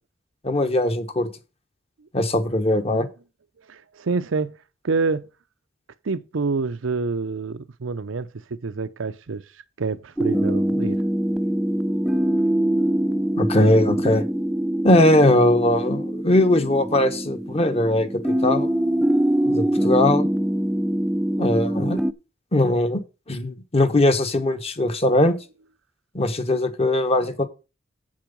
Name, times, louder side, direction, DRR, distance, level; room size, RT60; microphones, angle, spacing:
voice 1, 0.4-1.3 2.1-3.1 13.4-14.2 14.8-18.7 19.4-20.3 21.4-22.0 22.5-23.0 23.3-25.3 26.1-27.5, left 1 dB, 30° left, 1.1 m, -20 dB
voice 2, 3.7-4.5 4.8-5.3 6.0-9.4 9.8-11.0, right 4 dB, 90° right, 0.6 m, -27 dB
sound 1, 10.2-22.1, right 1 dB, ahead, 0.4 m, -23 dB
7.9 x 7.6 x 5.2 m
head